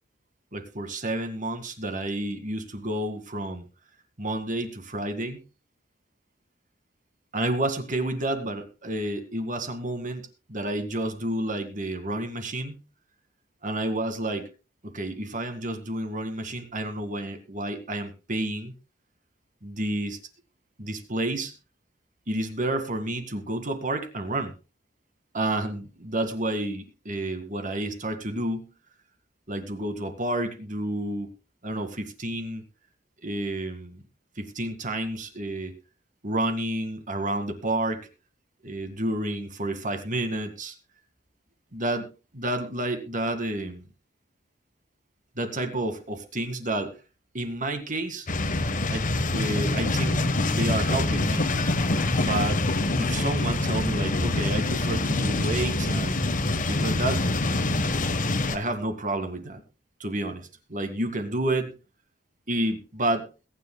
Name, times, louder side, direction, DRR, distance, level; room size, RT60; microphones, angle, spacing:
voice 1, 0.5-3.6 4.2-5.4 7.3-12.8 13.6-14.5 14.8-18.7 19.6-20.2 20.8-21.5 22.3-24.5 25.3-28.7 29.5-31.3 31.6-32.6 33.2-34.0 34.4-35.7 36.2-38.1 38.6-40.8 41.7-43.9 45.4-47.0 47.3-48.3 48.9-50.2 50.5-51.5 52.2-52.6 53.0-57.3 58.5-59.6 60.0-61.7 62.5-63.3, right 1 dB, 45° right, 7 dB, 2.0 m, -30 dB
sound 1, 48.3-58.6, left 2 dB, 45° left, 1.2 m, -25 dB
21.5 x 10.0 x 2.2 m, 0.32 s
head